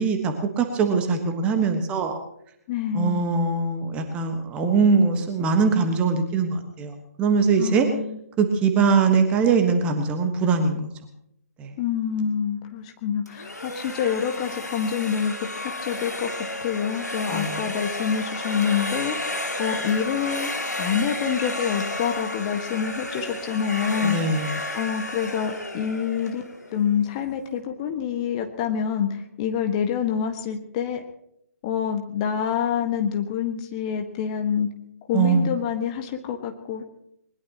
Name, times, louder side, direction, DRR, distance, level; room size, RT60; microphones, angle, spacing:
voice 1, 0.0-2.2 2.9-7.9 8.4-10.9 11.6-11.7 17.3-17.6 24.0-24.5 35.1-35.5, right 5 dB, 15° right, 5 dB, 1.4 m, -22 dB
voice 2, 2.7-3.2 7.6-8.2 11.8-15.3 15.6-24.2 24.7-26.4 26.7-31.0 31.6-34.7 35.1-36.8, left 8 dB, 25° left, 5 dB, 1.6 m, -27 dB
sound 1, 13.3-27.1, left 1 dB, 80° left, 2.2 m, -32 dB
21.0 x 21.0 x 3.0 m, 0.75 s
figure-of-eight pair, 135°, 9 cm